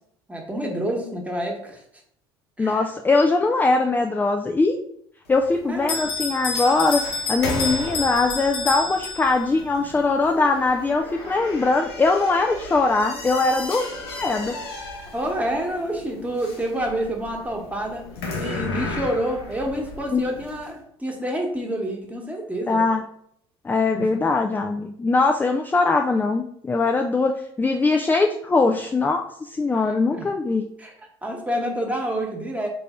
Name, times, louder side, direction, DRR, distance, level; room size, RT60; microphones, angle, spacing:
voice 1, 0.3-1.8 2.6-2.8 5.7-6.0 15.1-18.1 18.4-22.8 23.9-24.2 29.7-29.8 30.1-30.3 30.8-30.9 31.2-32.7, right 1 dB, 10° right, 0 dB, 1.2 m, -28 dB
voice 2, 2.6-4.8 5.3-7.0 7.3-13.9 14.2-14.6 20.1-20.2 22.7-23.0 23.6-30.7, left 3 dB, 15° left, 4 dB, 0.4 m, -21 dB
sound 1, 5.3-20.7, left 2 dB, 85° left, 0.9 m, -35 dB
Bell, 5.9-9.6, left 3 dB, 40° left, 0.9 m, -29 dB
3.9 x 2.7 x 3.5 m, 0.67 s
hypercardioid pair, 70°, 13 cm